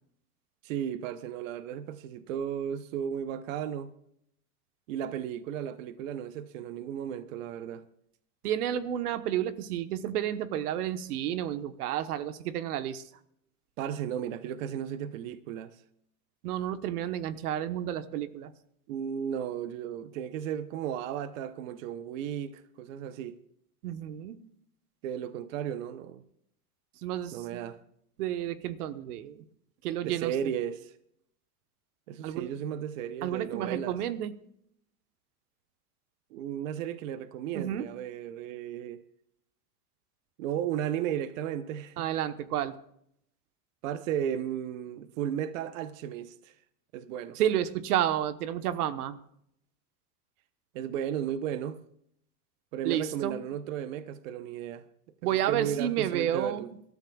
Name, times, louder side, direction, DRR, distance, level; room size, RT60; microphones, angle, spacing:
voice 1, 0.6-3.9 4.9-7.9 13.8-15.8 18.9-23.4 25.0-26.2 27.3-27.8 30.0-30.9 32.1-34.0 36.3-39.0 40.4-42.1 43.8-46.5 46.9-47.4 50.7-51.8 52.7-54.8 55.3-56.7, right 9 dB, 60° right, 0.9 m, -34 dB
voice 2, 8.4-13.1 16.4-18.5 23.8-24.3 27.0-27.6 28.2-29.4 29.8-30.3 32.2-32.5 33.2-34.3 37.5-37.9 42.0-42.8 47.3-49.2 52.8-53.4 55.2-56.8, right 11 dB, 90° right, 1.2 m, -31 dB
25.5 x 13.0 x 2.3 m
supercardioid pair, 165°, 44 cm